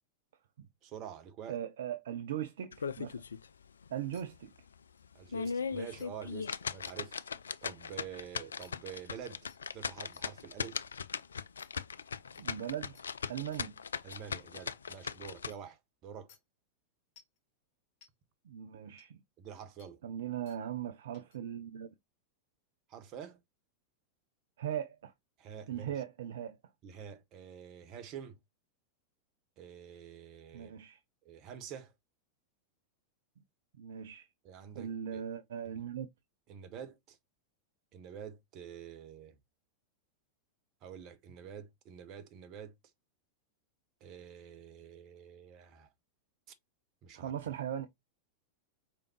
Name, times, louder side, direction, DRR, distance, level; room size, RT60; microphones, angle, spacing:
voice 1, 0.8-1.6 5.1-7.2 7.6-9.5 9.7-10.8 14.0-16.3 19.4-20.0 22.9-23.4 25.4-26.0 26.8-28.4 29.6-30.7 31.2-31.9 34.4-35.2 36.5-37.2 37.9-39.4 40.8-42.7 44.0-45.9 47.0-47.3, right 8 dB, 40° right, 1.0 m, -47 dB
voice 2, 1.5-3.1 3.9-4.5 12.4-13.0 13.3-13.7 18.4-19.2 20.0-21.9 24.6-25.1 25.7-26.6 30.5-31.0 33.8-34.3 34.7-36.1 47.1-47.9, right 10 dB, 60° right, 0.5 m, -39 dB
sound 1, 2.7-3.5 3.8-3.9 4.4-4.5 5.1-15.5, left 6 dB, 70° left, 0.3 m, -39 dB
sound 2, 4.1-4.2 5.0-5.1 5.4-5.6 6.0-6.1 6.8-7.0 8.6-8.7 9.5-9.6 10.1-10.2 10.7-10.8 11.6-11.7 12.3-12.4 12.9-13.1 13.5-13.6 14.1-14.2 14.9-15.0 15.5-15.6 16.3-16.4 17.2-17.4 18.0-18.1 19.0-19.1 19.8-19.9 20.5-20.6 21.1-21.4, left 6 dB, 40° left, 2.1 m, -61 dB
4.9 x 3.6 x 3.0 m
figure-of-eight pair, 90°, 0 cm